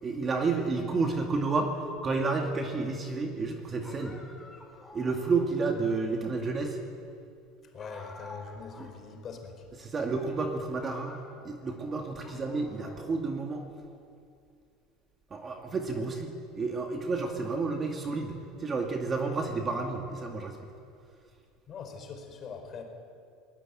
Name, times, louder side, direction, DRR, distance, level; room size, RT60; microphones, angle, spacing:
voice 1, 0.0-4.2 4.9-6.8 8.8-8.9 9.8-11.2 11.4-13.6 15.3-20.6, right 3 dB, 25° right, 2 dB, 2.3 m, -31 dB
sound 1, 3.8-5.6 7.8-9.0 9.3-9.4 10.2-10.5 10.8-11.8 12.2-13.4, left 2 dB, 10° left, 4.6 m, -50 dB
voice 2, 7.7-9.6 21.7-22.8, left 5 dB, 35° left, 4 dB, 4.4 m, -42 dB
21.5 x 19.5 x 8.9 m, 2.4 s
supercardioid pair, 140°, 0 cm